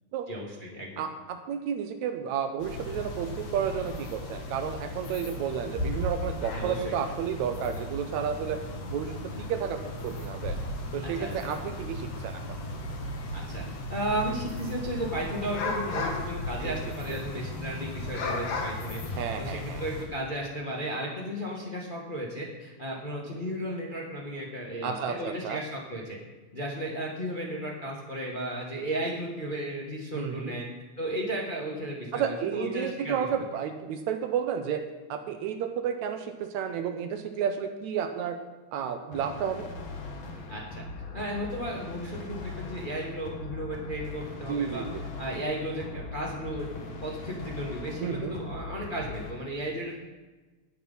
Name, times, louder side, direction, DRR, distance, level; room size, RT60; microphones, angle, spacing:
voice 1, 0.3-1.0 6.5-7.0 11.1-11.5 13.3-13.6 13.9-19.0 19.4-26.2 26.5-30.6 31.0-33.3 40.5-40.8 41.1-44.8 45.2-50.0, right 1 dB, 25° left, -2 dB, 1.1 m, -34 dB
voice 2, 1.0-8.6 8.9-9.1 9.4-10.6 10.9-12.4 16.6-16.8 17.1-17.2 19.2-19.8 24.8-25.6 30.1-30.6 32.1-34.8 35.1-38.4 38.7-39.7 44.5-45.0 48.0-48.4, right 8 dB, 75° right, 7 dB, 2.0 m, -31 dB
sound 1, 2.6-20.0, left 2 dB, 80° left, 3.1 m, -35 dB
sound 2, 39.1-49.3, left 3 dB, 50° left, 1.8 m, -40 dB
17.5 x 6.1 x 5.5 m, 1.2 s
omnidirectional pair, 3.5 m